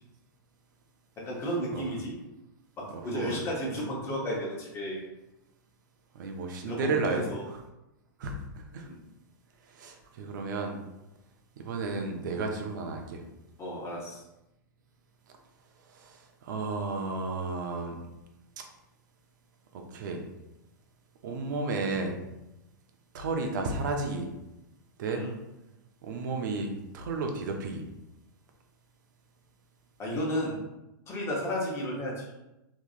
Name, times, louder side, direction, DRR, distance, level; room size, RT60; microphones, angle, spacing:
voice 1, 1.2-2.1 2.8-5.0 6.7-7.4 8.8-9.0 13.6-14.2 25.1-25.3 30.0-30.6 31.1-32.2, equal, 25° left, -4 dB, 1.1 m, -33 dB
voice 2, 2.9-3.4 6.1-7.6 8.2-8.9 9.7-10.8 11.6-13.2 15.9-18.0 18.6-18.7 19.7-20.2 21.2-22.2 23.1-24.3 25.0-25.3 26.0-27.8, right 3 dB, 65° right, 3 dB, 0.7 m, -33 dB
3.5 x 3.0 x 2.5 m, 0.93 s
hypercardioid pair, 120°, 11 cm